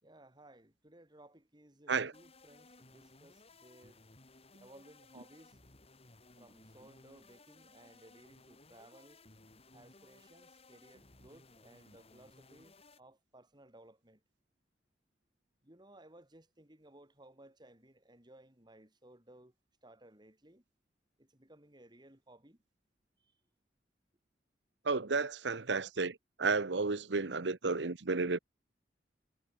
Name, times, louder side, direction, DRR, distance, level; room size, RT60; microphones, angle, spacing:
voice 1, 0.0-4.0 4.6-5.6 6.4-9.2 9.7-14.2 15.6-19.5 19.8-20.6 21.2-22.6 23.2-23.3, right 1 dB, 25° right, 3.9 m, -59 dB
sound 1, 2.1-13.0, left 2 dB, 35° left, 3.4 m, -60 dB
voice 2, 24.8-28.4, right 4 dB, 75° right, 1.0 m, -32 dB
head